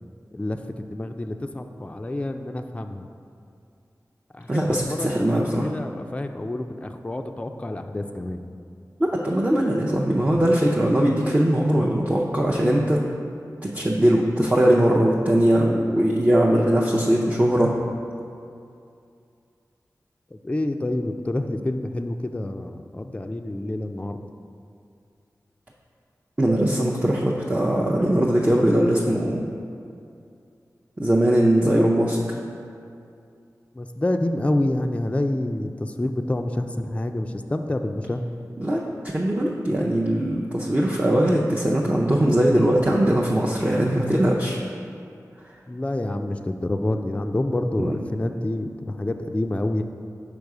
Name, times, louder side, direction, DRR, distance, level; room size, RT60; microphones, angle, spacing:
voice 1, 0.3-3.1 4.3-8.4 20.3-24.2 33.7-38.2 45.7-49.8, left 1 dB, 20° left, 6 dB, 0.4 m, -28 dB
voice 2, 4.5-5.7 9.0-13.0 13.6-17.8 26.4-29.4 31.0-32.4 38.6-44.6 47.8-47.9, right 1 dB, 20° right, -3 dB, 0.6 m, -20 dB
5.2 x 4.8 x 4.7 m, 2.5 s
cardioid pair, 45°, 7 cm